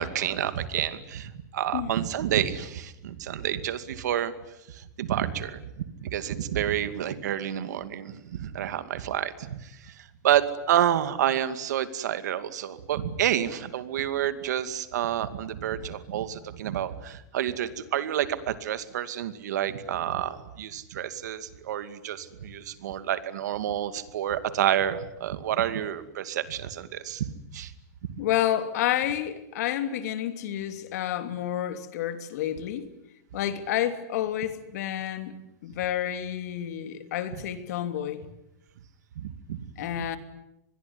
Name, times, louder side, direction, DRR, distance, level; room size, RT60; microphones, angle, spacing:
voice 1, 0.0-4.3 4.7-27.3 27.5-27.7 39.2-39.6, right 11 dB, 80° right, 2.4 m, -29 dB
voice 2, 28.2-32.9 33.3-35.3 35.6-38.2 39.8-40.2, left 11 dB, 70° left, 2.9 m, -29 dB
26.0 x 21.5 x 9.8 m
supercardioid pair, 145°, 9 cm